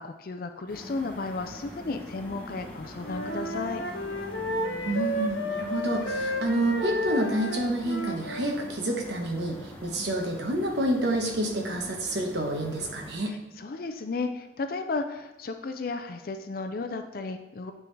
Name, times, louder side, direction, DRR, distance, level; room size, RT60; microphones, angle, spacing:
voice 1, 0.0-3.8 13.6-17.7, left 3 dB, 50° left, 7 dB, 0.4 m, -34 dB
sound 1, 0.7-13.2, equal, 10° left, 0.9 m, -44 dB
Wind instrument woodwind instrument, 3.0-8.6, left 1 dB, 75° left, 0.8 m, -32 dB
voice 2, 4.8-13.4, right 1 dB, 65° right, 2 dB, 1.1 m, -28 dB
9.1 x 3.7 x 3.3 m, 1.0 s
head